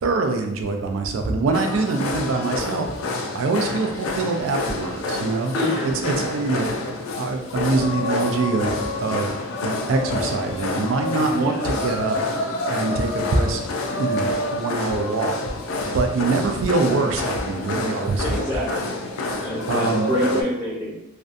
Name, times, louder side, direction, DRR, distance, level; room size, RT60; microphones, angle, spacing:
voice 1, 0.0-2.9 3.3-5.5 6.0-9.3 9.6-12.2 12.7-13.6 13.9-15.4 15.8-18.8 19.7-20.1, right 3 dB, 75° right, 4 dB, 0.4 m, -24 dB
sound 1, 1.5-20.4, left 2 dB, 85° left, 0.4 m, -28 dB
voice 2, 5.5-5.9 11.3-11.9 18.3-18.9 19.4-20.9, equal, 15° right, -11 dB, 0.8 m, -27 dB
2.5 x 2.2 x 2.5 m, 0.91 s
head